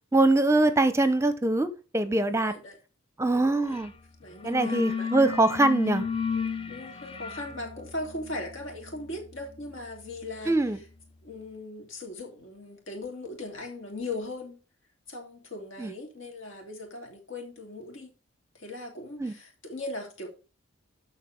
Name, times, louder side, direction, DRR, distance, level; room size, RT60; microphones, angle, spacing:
voice 1, 0.1-1.7 1.9-2.5 3.2-3.9 4.4-6.0 10.5-10.8 15.8-15.9 19.2-19.3, right 2 dB, 15° right, 0.7 m, -23 dB
voice 2, 2.2-2.8 3.3-3.8 4.2-5.1 6.7-10.8 11.2-14.6 15.1-18.1 18.5-20.3, left 2 dB, 70° left, 3.1 m, -39 dB
sound 1, 3.7-4.0 4.2-10.9, left 6 dB, 25° left, 0.5 m, -35 dB
12.5 x 4.3 x 5.1 m
head